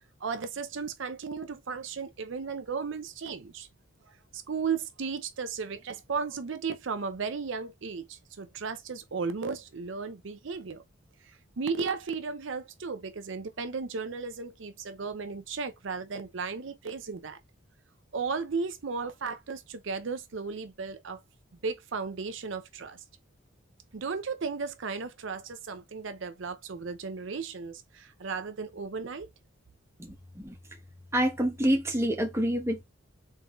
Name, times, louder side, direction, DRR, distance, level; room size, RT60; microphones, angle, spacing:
voice 1, 0.2-3.7 4.3-10.8 11.3-17.4 18.1-21.2 21.6-23.0 23.9-29.3, right 5 dB, 65° right, 0.6 m, -35 dB
voice 2, 30.0-30.5 31.1-32.8, equal, 15° right, 1.0 m, -27 dB
3.9 x 3.5 x 3.0 m
head